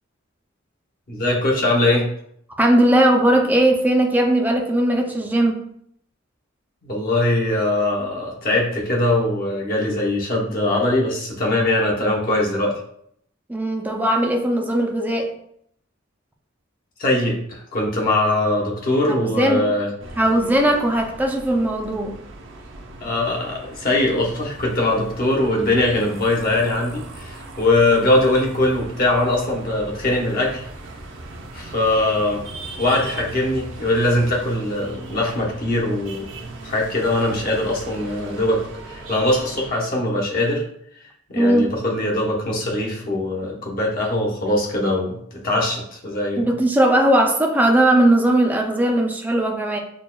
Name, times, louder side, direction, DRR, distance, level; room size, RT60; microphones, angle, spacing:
voice 1, 1.1-2.1 6.8-12.8 17.0-19.9 23.0-30.7 31.5-32.4 32.8-38.6 38.9-40.6 41.3-46.5, left 1 dB, 45° left, -2 dB, 0.9 m, -21 dB
voice 2, 2.6-5.6 13.5-15.3 19.2-19.7 20.2-22.2 41.4-41.7 46.4-49.8, right 1 dB, 10° right, 2 dB, 0.4 m, -18 dB
sound 1, 20.0-39.7, right 2 dB, 65° right, 0.6 m, -38 dB
6.3 x 2.3 x 2.2 m, 0.69 s
head